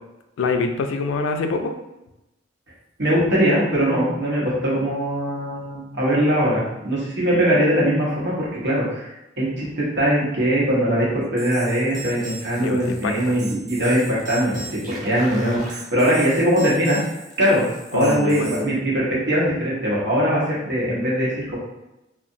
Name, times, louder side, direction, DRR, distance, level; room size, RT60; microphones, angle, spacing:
voice 1, 0.4-1.7 12.6-13.4 17.9-18.8, left 3 dB, 80° left, 5 dB, 0.3 m, -25 dB
voice 2, 3.0-9.1 9.4-17.0 17.4-17.7 17.9-21.6, equal, 60° right, -6 dB, 1.0 m, -21 dB
sound 1, 11.4-18.6, right 3 dB, 45° right, 0.7 m, -38 dB
2.7 x 2.4 x 2.6 m, 0.94 s
head